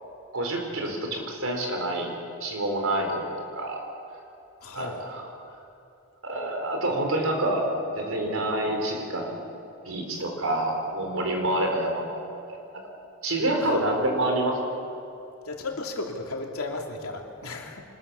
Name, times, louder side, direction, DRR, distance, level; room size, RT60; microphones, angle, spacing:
voice 1, 0.3-2.1 2.4-3.8 4.7-5.3 6.2-7.7 7.9-9.3 9.8-12.2 13.2-14.6, right 1 dB, 70° right, 2 dB, 4.4 m, -27 dB
voice 2, 4.6-5.0 13.6-14.0 15.4-17.8, left 2 dB, 80° left, 1 dB, 3.0 m, -35 dB
25.0 x 21.0 x 7.1 m, 2.7 s
head